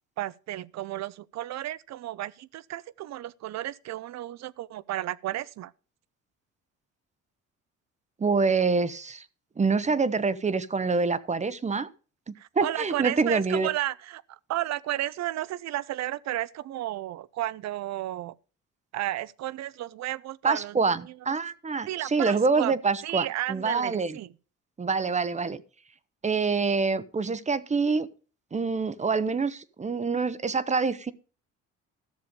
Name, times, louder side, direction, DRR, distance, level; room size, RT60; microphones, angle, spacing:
voice 1, 0.2-5.7 12.4-18.3 18.9-21.4 21.8-22.7 23.0-24.3, right 14 dB, 60° right, 0.6 m, -33 dB
voice 2, 8.2-9.2 9.6-11.9 12.3-13.7 20.4-24.2 24.8-25.6 26.2-28.1 28.5-31.1, right 4 dB, 25° right, 0.8 m, -26 dB
13.5 x 6.9 x 5.2 m
cardioid pair, 95°, 30 cm